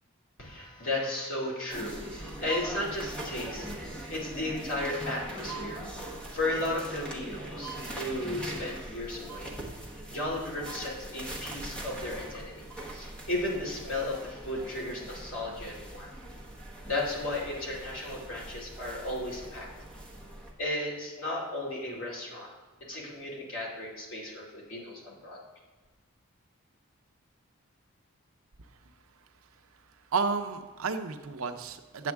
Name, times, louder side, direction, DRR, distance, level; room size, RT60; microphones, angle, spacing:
voice 1, 0.4-9.5 10.1-12.6 12.9-16.1 16.9-19.7 20.6-22.5 22.8-25.4, left 1 dB, 60° left, -4 dB, 2.4 m, -35 dB
sound 1, 1.7-20.5, right 1 dB, 5° left, 1.0 m, -41 dB
voice 2, 30.1-32.1, right 5 dB, 70° right, 7 dB, 0.6 m, -31 dB
9.4 x 7.6 x 3.5 m, 1.3 s
head